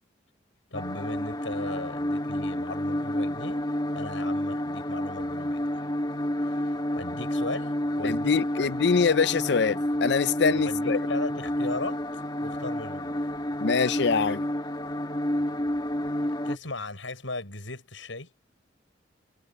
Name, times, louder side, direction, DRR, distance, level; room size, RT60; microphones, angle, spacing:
voice 1, 0.7-3.6 4.0-5.6 6.4-8.4 10.5-13.3 16.4-18.3, left 2 dB, 80° left, 7.0 m, -37 dB
sound 1, 0.7-16.6, left 1 dB, 25° left, 2.2 m, -30 dB
voice 2, 8.0-11.0 13.6-14.5, left 5 dB, 60° left, 0.5 m, -24 dB
head